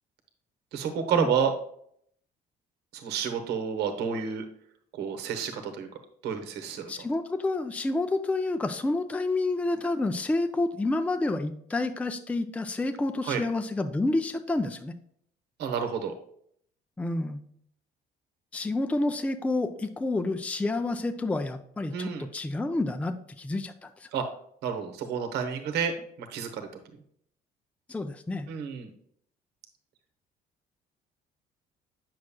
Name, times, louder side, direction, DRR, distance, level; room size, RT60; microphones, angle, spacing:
voice 1, 0.7-1.5 2.9-4.4 4.9-5.9 6.2-7.0 13.2-13.4 15.6-16.1 21.9-22.2 24.1-24.2 24.6-26.7 28.5-28.9, right 7 dB, 80° right, 6 dB, 1.0 m, -30 dB
voice 2, 6.9-14.9 17.0-17.4 18.5-24.1 27.9-28.5, left 2 dB, 10° left, 8 dB, 0.4 m, -29 dB
8.4 x 6.3 x 2.2 m, 0.66 s
cardioid pair, 110°, 17 cm